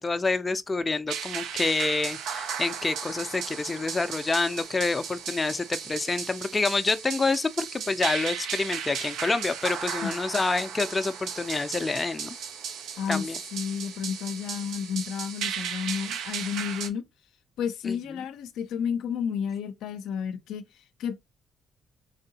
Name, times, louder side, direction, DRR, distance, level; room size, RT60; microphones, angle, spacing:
voice 1, 0.0-12.4 13.1-13.4 17.8-18.0, left 3 dB, 25° left, 0.4 m, -27 dB
sound 1, 1.1-16.9, right 7 dB, 85° right, 0.6 m, -35 dB
voice 2, 13.5-17.0 17.6-20.6 21.0-21.2, left 7 dB, 85° left, 0.5 m, -31 dB
3.6 x 3.3 x 2.8 m
cardioid pair, 90°, 0 cm